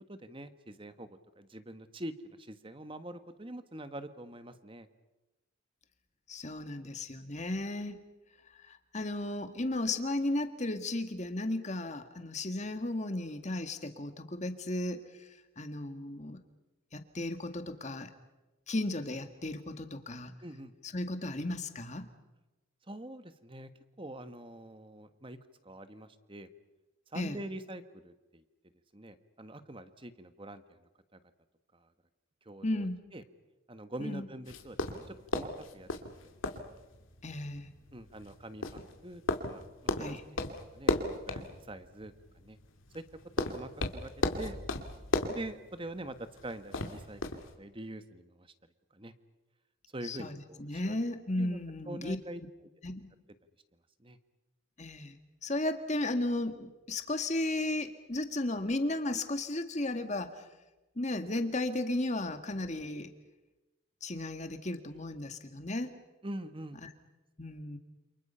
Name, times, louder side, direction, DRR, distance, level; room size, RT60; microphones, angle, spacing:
voice 1, 0.1-2.1 2.4-4.9 20.4-20.7 22.9-23.7 24.0-25.4 25.6-26.5 27.1-28.4 28.9-30.8 31.1-31.2 31.7-31.9 32.4-32.9 33.1-33.2 33.7-36.0 37.9-39.2 39.5-40.2 40.5-42.6 42.9-43.0 43.4-44.1 44.4-44.6 45.3-48.5 48.9-49.1 49.9-51.0 51.4-51.6 51.9-52.4 54.0-54.2 66.2-66.8, right 1 dB, 25° right, 10 dB, 1.4 m, -44 dB
voice 2, 6.3-8.0 8.5-15.0 15.6-16.4 16.9-18.1 18.7-20.3 20.9-22.1 27.1-27.4 32.6-33.0 34.0-34.3 37.2-37.7 40.0-40.2 50.0-50.3 50.6-52.2 52.8-53.1 54.8-55.2 55.4-60.4 61.0-63.1 64.0-66.0 66.8-66.9 67.4-67.8, left 2 dB, 35° left, 7 dB, 1.9 m, -34 dB
sound 1, 34.5-47.6, left 2 dB, 90° left, 2.5 m, -36 dB
28.5 x 28.0 x 5.7 m, 1.1 s
head